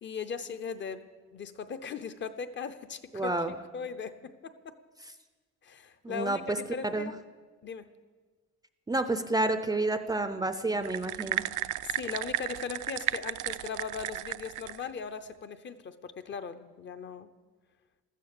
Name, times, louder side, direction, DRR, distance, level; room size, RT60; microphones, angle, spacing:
voice 1, 0.0-4.7 5.6-7.1 7.6-7.9 11.8-17.3, left 6 dB, 40° left, 11 dB, 0.7 m, -39 dB
voice 2, 3.1-3.5 6.0-6.6 6.8-7.1 8.9-11.5, right 2 dB, 10° right, 9 dB, 0.5 m, -29 dB
sound 1, 10.8-14.9, right 14 dB, 85° right, 0.6 m, -33 dB
15.0 x 13.5 x 6.7 m, 1.4 s
cardioid pair, 165°, 31 cm